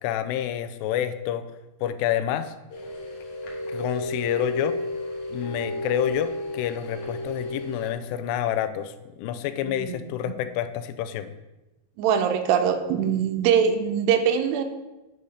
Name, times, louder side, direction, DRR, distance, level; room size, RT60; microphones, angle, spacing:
voice 1, 0.0-1.4 1.8-2.5 3.7-4.8 5.3-8.9 9.2-11.3, left 10 dB, 90° left, 11 dB, 2.7 m, -28 dB
sound 1, 2.7-7.9, left 1 dB, 60° left, 2.2 m, -32 dB
voice 2, 9.6-10.0 10.2-10.3 12.0-14.6, right 8 dB, 85° right, 7 dB, 2.8 m, -23 dB
9.0 x 4.2 x 4.8 m, 1.0 s
omnidirectional pair, 4.7 m